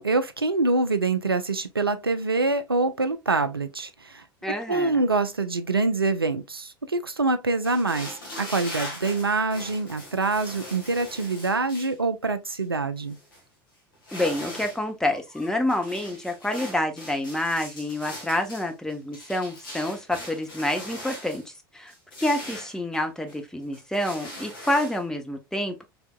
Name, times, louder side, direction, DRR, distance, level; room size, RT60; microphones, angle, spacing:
voice 1, 0.0-4.2 4.7-13.2, right 3 dB, 90° right, 0.4 m, -25 dB
voice 2, 4.4-5.1 14.1-21.9 22.2-25.8, left 1 dB, 5° left, 0.8 m, -28 dB
sound 1, 7.6-12.0 12.5-12.6 13.0-13.4 13.9-14.8 15.1-21.5 21.9-23.4 23.7-25.0, left 1 dB, 70° left, 1.6 m, -40 dB
3.5 x 3.3 x 2.2 m
figure-of-eight pair, 75°, 12 cm